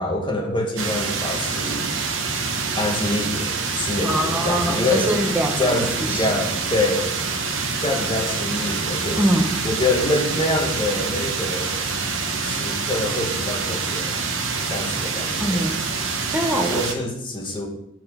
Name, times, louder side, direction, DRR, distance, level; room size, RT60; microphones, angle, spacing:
voice 1, 0.0-1.9 2.8-5.1 5.6-7.2 7.8-9.2 9.6-11.8 12.4-14.2 14.7-15.6 16.6-17.7, left 2 dB, 25° left, 1 dB, 1.2 m, -25 dB
sound 1, 0.8-16.9, right 4 dB, 65° right, 1.0 m, -26 dB
voice 2, 4.0-6.3 9.2-9.7 15.4-15.8 16.3-16.8, equal, 10° right, 3 dB, 0.8 m, -23 dB
7.2 x 4.7 x 5.7 m, 0.80 s
head